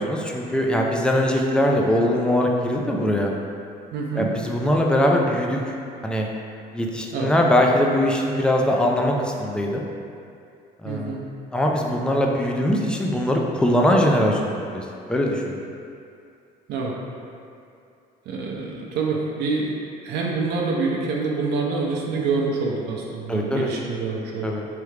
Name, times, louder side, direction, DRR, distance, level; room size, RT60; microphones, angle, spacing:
voice 1, 0.0-3.3 4.2-5.6 6.0-6.3 6.7-9.8 10.8-11.1 11.5-15.6 23.3-23.7 24.4-24.7, left 1 dB, 5° left, 0 dB, 0.4 m, -21 dB
voice 2, 3.9-4.3 7.1-7.3 10.8-11.2 16.7-16.9 18.3-19.7 20.0-24.5, right 4 dB, 80° right, -2 dB, 0.6 m, -26 dB
3.5 x 3.3 x 3.2 m, 2.5 s
cardioid pair, 110°, 17 cm